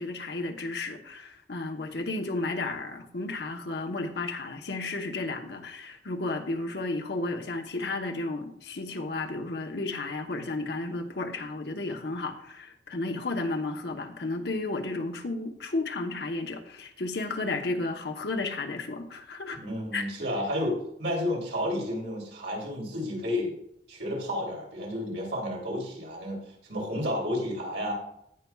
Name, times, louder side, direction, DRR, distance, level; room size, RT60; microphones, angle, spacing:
voice 1, 0.0-19.6 19.9-20.0, left 2 dB, 65° left, 4 dB, 1.0 m, -33 dB
voice 2, 19.6-23.5 23.9-27.9, left 1 dB, 80° right, -2 dB, 3.3 m, -31 dB
17.0 x 5.9 x 2.4 m, 0.74 s
head